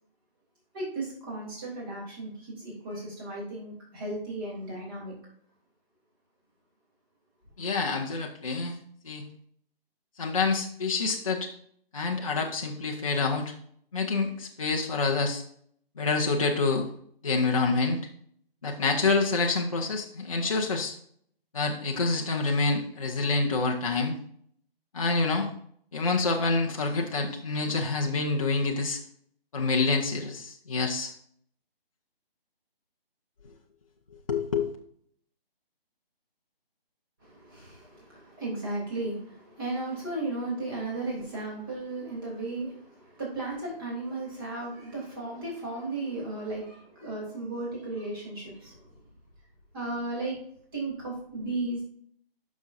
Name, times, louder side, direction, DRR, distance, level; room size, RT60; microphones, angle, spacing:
voice 1, 0.7-5.1 37.2-49.0 49.7-50.4 50.7-51.8, right 2 dB, 20° right, -4 dB, 3.0 m, -35 dB
voice 2, 7.6-8.8 9.0-9.3 10.2-11.5 11.9-13.5 13.9-15.4 16.0-16.9 17.2-18.0 18.6-20.9 21.5-24.1 24.9-25.5 25.9-29.0 29.5-31.1 34.3-34.7, left 3 dB, 35° left, 0 dB, 0.8 m, -27 dB
10.0 x 6.2 x 2.6 m, 0.64 s
hypercardioid pair, 170°, 30 cm